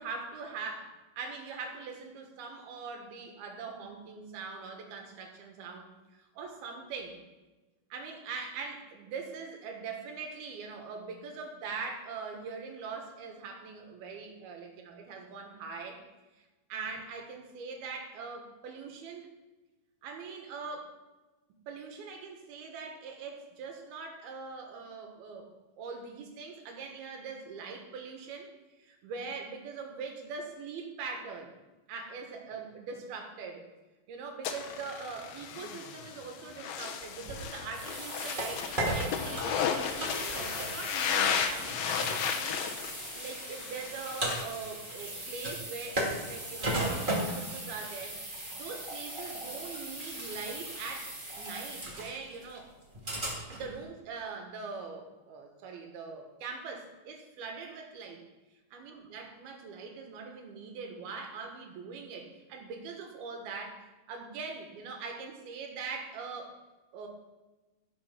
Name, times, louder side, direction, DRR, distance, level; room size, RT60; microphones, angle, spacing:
voice 1, 0.0-7.2 7.9-16.0 16.7-19.3 20.0-20.9 21.7-25.5 25.8-28.5 28.8-31.5 31.9-33.6 34.1-39.7 39.9-48.2 48.5-52.7 53.5-58.2 58.7-63.8 64.1-66.6 66.9-67.1, right 4 dB, 85° right, 3 dB, 3.4 m, -42 dB
sound 1, 34.5-44.4, left 7 dB, 75° left, 2.7 m, -34 dB
sound 2, 37.0-53.8, right 1 dB, 20° right, 1.7 m, -37 dB
15.5 x 6.2 x 5.9 m, 1.1 s
omnidirectional pair, 4.3 m